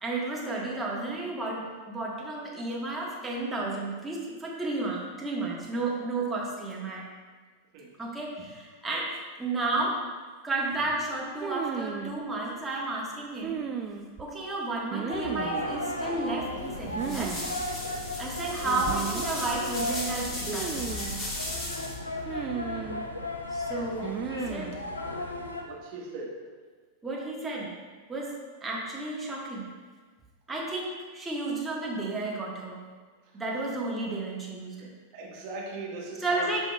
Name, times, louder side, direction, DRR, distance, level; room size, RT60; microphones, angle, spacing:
voice 1, 0.0-7.1 8.0-9.1 9.4-10.0 10.4-13.6 14.2-17.4 18.2-20.9 23.5-24.7 27.0-27.7 28.1-28.3 28.6-29.7 30.5-32.8 33.3-34.9 36.2-36.6, right 2 dB, 10° right, -3 dB, 1.4 m, -32 dB
sound 1, 11.4-12.1 13.4-14.2 14.9-15.6 16.9-17.4 17.6-17.7 18.6-19.3 20.5-21.2 22.3-23.0 24.0-24.8, right 7 dB, 30° right, 0.5 m, -34 dB
sound 2, 15.1-25.6, left 2 dB, 80° left, 0.6 m, -35 dB
sound 3, 16.6-22.0, left 1 dB, 25° left, 1.5 m, -36 dB
voice 2, 25.6-26.3 35.1-36.5, right 3 dB, 45° right, -3 dB, 1.5 m, -39 dB
9.2 x 5.3 x 2.3 m, 1.5 s
figure-of-eight pair, 90°, 0 cm